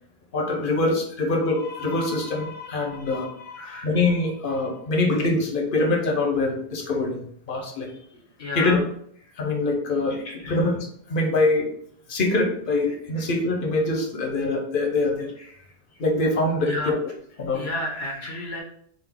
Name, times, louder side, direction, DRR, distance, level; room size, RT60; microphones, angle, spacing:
voice 1, 0.3-7.2 7.5-7.9 8.5-8.8 9.4-10.8 11.1-11.7 12.1-15.3 16.0-17.0 17.4-17.6, left 2 dB, 55° left, 2 dB, 1.0 m, -24 dB
voice 2, 3.6-3.9 8.4-8.8 10.4-10.7 16.6-16.9 17.5-18.6, left 2 dB, 75° left, 0 dB, 1.0 m, -31 dB
3.8 x 2.7 x 3.5 m, 0.65 s
omnidirectional pair, 1.1 m